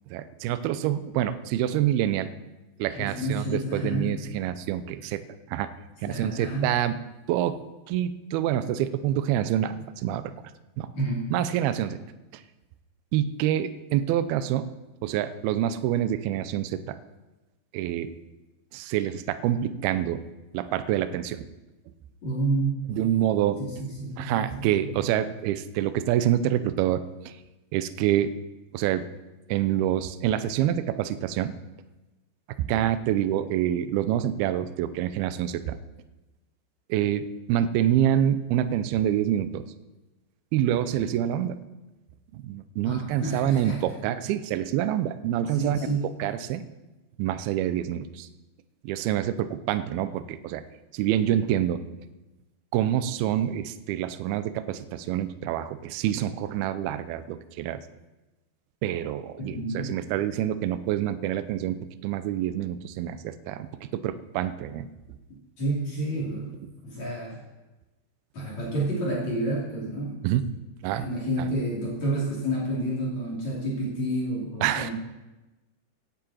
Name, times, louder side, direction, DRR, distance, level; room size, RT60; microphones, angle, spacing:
voice 1, 0.1-2.3 2.8-5.2 5.5-5.7 6.0-7.0 7.3-10.3 10.8-10.9 11.3-12.0 12.3-12.4 13.1-14.7 15.0-17.0 17.7-18.1 18.7-20.2 20.5-21.5 22.9-23.6 24.2-27.3 27.7-28.3 28.7-29.1 29.5-31.6 32.6-35.8 36.9-39.6 40.5-41.6 42.3-46.6 47.2-48.3 48.8-50.6 50.9-51.8 52.7-57.8 58.8-64.9 70.2-70.4 70.8-71.1 74.6-74.9, right 11 dB, 90° right, 11 dB, 2.2 m, -27 dB
voice 2, 2.9-4.1 6.0-6.7 11.0-11.2 22.2-22.8 23.6-23.7 24.0-25.0 42.8-43.8 45.5-46.0 59.4-59.9 65.6-66.5 66.8-67.4 68.3-70.2 70.9-74.9, right 1 dB, 40° left, -5 dB, 3.7 m, -29 dB
16.5 x 10.5 x 4.3 m, 1.1 s
omnidirectional pair, 5.1 m